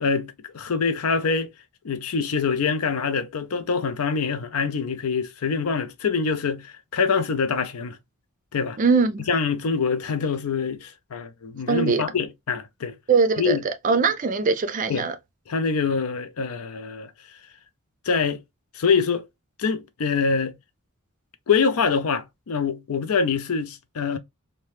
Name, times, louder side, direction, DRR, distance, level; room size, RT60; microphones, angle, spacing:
voice 1, 0.0-1.5 1.8-8.0 8.5-8.8 9.2-12.9 13.4-13.6 14.9-15.1 15.5-17.1 18.1-18.4 18.7-19.3 19.6-20.5 21.5-24.2, left 5 dB, 80° left, 0.5 m, -25 dB
voice 2, 8.8-9.2 11.7-12.0 13.1-13.6 13.8-15.1, right 4 dB, 35° right, 0.4 m, -21 dB
2.8 x 2.1 x 3.2 m
head